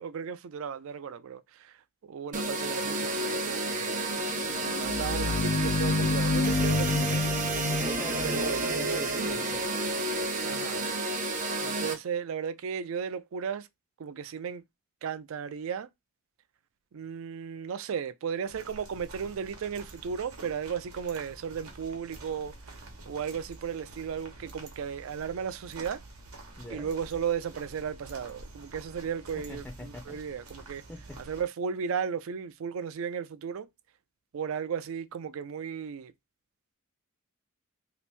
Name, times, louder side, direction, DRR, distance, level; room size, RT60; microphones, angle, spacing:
voice 1, 0.0-1.8 2.0-4.2 4.8-7.2 8.2-8.7 10.4-10.9 11.6-13.7 14.0-14.6 15.0-15.9 16.9-22.5 23.1-26.0 26.7-30.8 31.2-33.7 34.3-36.1, right 7 dB, 65° right, 0.4 m, -35 dB
sound 1, 2.3-11.9, right 2 dB, 40° right, 0.7 m, -31 dB
sound 2, 4.2-9.7, left 3 dB, 80° left, 0.5 m, -30 dB
voice 2, 7.8-9.7 26.6-26.9 29.5-30.2 30.9-31.2, left 2 dB, 5° left, 0.4 m, -42 dB
sound 3, 18.5-31.4, right 2 dB, 90° right, 1.0 m, -48 dB
2.9 x 2.5 x 3.3 m
head